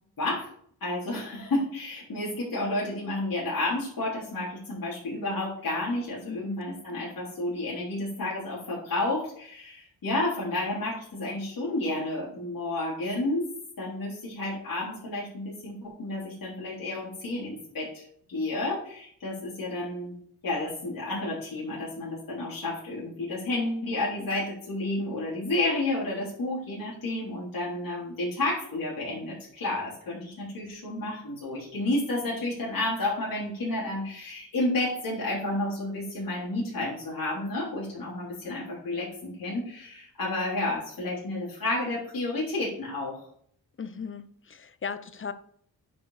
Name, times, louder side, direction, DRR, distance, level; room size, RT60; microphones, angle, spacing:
voice 1, 0.2-0.5 0.8-13.5 13.8-20.1 20.4-43.2, left 2 dB, 60° left, 3.6 m, -31 dB
voice 2, 6.3-6.6 43.8-45.3, left 6 dB, 35° left, 0.7 m, -37 dB
10.0 x 5.4 x 4.1 m
wide cardioid pair, 125°, 38 cm